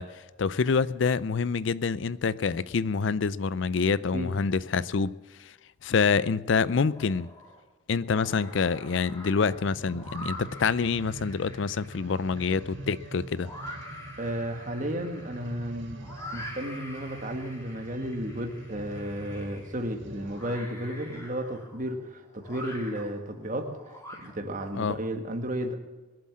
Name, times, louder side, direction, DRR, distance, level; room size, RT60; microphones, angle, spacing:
voice 1, 0.0-5.1 5.4-5.5 5.8-7.3 7.9-13.5 24.7-25.0, left 5 dB, 60° left, 0.4 m, -26 dB
sound 1, 6.9-7.6 8.0-24.7, equal, 15° left, 2.7 m, -45 dB
sound 2, 9.4-20.7 21.3-21.4, right 1 dB, 65° right, 1.7 m, -45 dB
voice 2, 14.2-23.7 24.2-25.8, equal, 40° right, 1.8 m, -33 dB
21.5 x 7.7 x 7.4 m
head